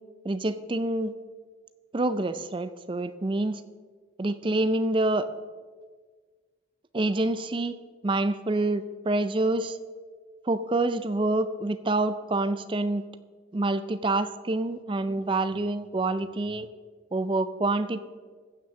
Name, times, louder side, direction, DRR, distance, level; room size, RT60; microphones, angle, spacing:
voice 1, 0.2-1.1 1.9-3.6 4.2-5.3 6.9-7.8 8.0-9.8 10.5-13.0 13.5-16.7 17.1-18.0, right 2 dB, 25° right, 13 dB, 0.4 m, -27 dB
15.0 x 6.1 x 7.0 m, 1.5 s
head